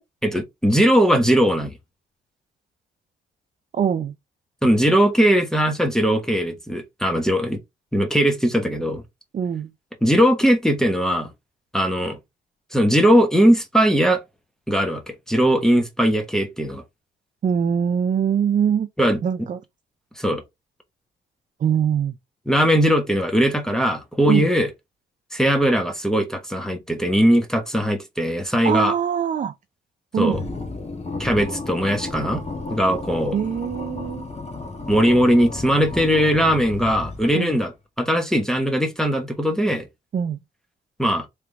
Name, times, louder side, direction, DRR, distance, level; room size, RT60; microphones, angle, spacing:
voice 1, 0.2-1.7 4.6-7.6 7.9-9.0 10.0-11.3 11.7-12.2 12.7-14.2 14.7-16.8 19.0-19.2 20.2-20.4 22.5-24.7 25.3-28.9 30.2-30.4 31.2-32.4 32.7-33.3 34.9-37.7 38.0-39.9 41.0-41.3, equal, 5° left, 1.2 m, -19 dB
voice 2, 3.7-4.1 9.3-9.7 17.4-18.9 19.2-19.6 21.6-22.2 24.2-24.5 28.6-29.5 30.1-30.4 33.3-34.2 37.3-37.6 40.1-40.4, right 8 dB, 40° right, 0.5 m, -22 dB
sound 1, 30.3-37.5, left 3 dB, 30° left, 1.6 m, -33 dB
3.4 x 3.3 x 3.4 m
cardioid pair, 90°, 20 cm